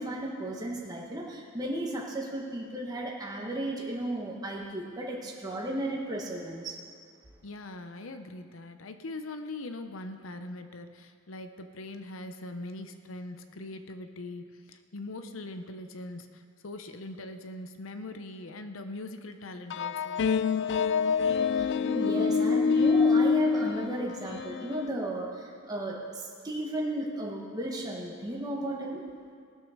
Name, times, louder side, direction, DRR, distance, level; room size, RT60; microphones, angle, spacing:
voice 1, 0.0-6.8 21.5-29.0, right 1 dB, 20° right, -3 dB, 1.5 m, -34 dB
voice 2, 7.4-20.2, left 2 dB, 80° left, 8 dB, 0.8 m, -41 dB
sound 1, 19.7-24.9, left 5 dB, 60° left, 0.4 m, -26 dB
18.5 x 6.3 x 6.5 m, 2.2 s
head